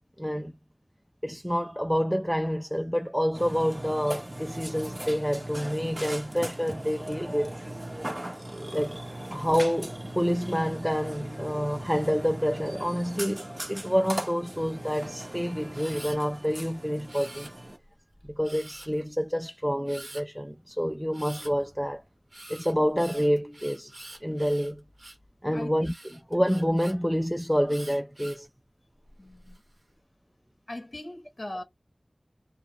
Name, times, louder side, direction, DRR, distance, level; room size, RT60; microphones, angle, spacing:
voice 1, 0.2-0.5 1.2-7.5 8.7-9.0 9.3-17.5 18.2-22.0 22.5-23.9 24.2-24.8 25.4-28.5, equal, ahead, 0.3 m, -28 dB
Burping eructation, 3.3-17.8, right 1 dB, 45° right, 0.8 m, -38 dB
Camera, 15.7-16.2 17.1-17.8 18.4-19.0 19.9-20.2 21.1-21.5 22.3-25.3 25.8-26.9 27.7-28.5 29.1-29.6, right 1 dB, 85° right, 1.1 m, -46 dB
voice 2, 29.2-29.6 30.7-31.6, left 1 dB, 55° left, 0.6 m, -39 dB
2.3 x 2.0 x 3.0 m
wide cardioid pair, 45°, 0 cm